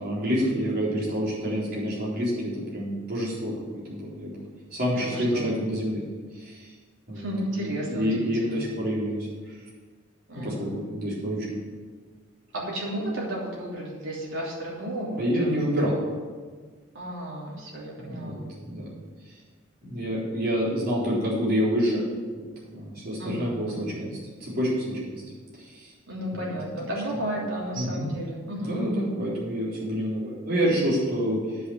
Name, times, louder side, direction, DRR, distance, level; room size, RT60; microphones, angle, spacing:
voice 1, 0.0-2.3 2.7-3.5 3.9-4.4 4.7-6.0 6.3-6.7 7.1-7.3 7.5-9.2 10.3-11.5 15.2-15.9 18.0-18.9 19.8-22.0 22.4-24.7 25.0-25.1 25.5-25.9 27.7-28.1 28.6-31.4, equal, 45° right, -7 dB, 3.9 m, -28 dB
voice 2, 4.9-5.5 7.1-8.6 10.3-10.7 12.5-15.7 16.9-18.4 23.2-23.9 26.1-28.9, right 1 dB, 70° right, -4 dB, 3.1 m, -33 dB
9.8 x 5.9 x 8.1 m, 1.5 s
head